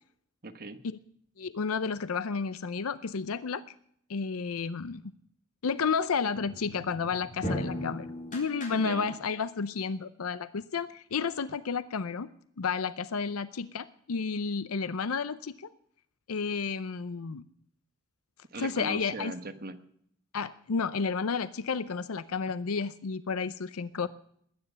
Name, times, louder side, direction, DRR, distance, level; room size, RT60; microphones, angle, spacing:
voice 1, 0.4-0.8 8.7-9.2 18.5-19.8, right 3 dB, 45° right, 8 dB, 1.3 m, -39 dB
voice 2, 1.4-3.6 4.1-5.0 5.6-12.3 12.6-15.7 16.3-17.4 18.6-19.3 20.3-24.1, left 5 dB, 80° left, 14 dB, 0.6 m, -31 dB
sound 1, 6.3-9.3, equal, 40° left, 3.9 m, -38 dB
20.5 x 9.7 x 6.9 m, 0.67 s
head